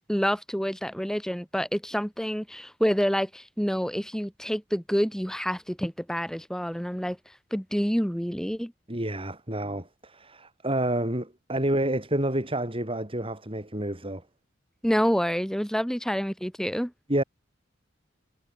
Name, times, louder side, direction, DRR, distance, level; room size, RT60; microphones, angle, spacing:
voice 1, 0.1-7.2 7.5-8.7 14.8-16.9, equal, 5° left, 3.4 m, -28 dB
voice 2, 8.9-14.2 17.1-17.2, right 1 dB, 30° right, 6.5 m, -29 dB
head